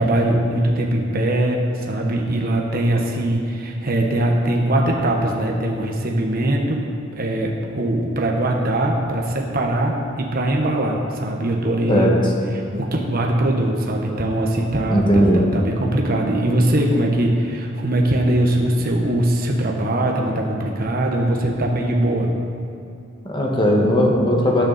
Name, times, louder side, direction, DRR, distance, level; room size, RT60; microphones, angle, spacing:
voice 1, 0.0-6.8 7.1-12.1 12.7-22.3, right 1 dB, 45° right, 0 dB, 1.1 m, -21 dB
voice 2, 14.9-15.4 23.2-24.6, equal, 25° left, -1 dB, 1.6 m, -17 dB
18.5 x 6.6 x 4.1 m, 2.7 s
head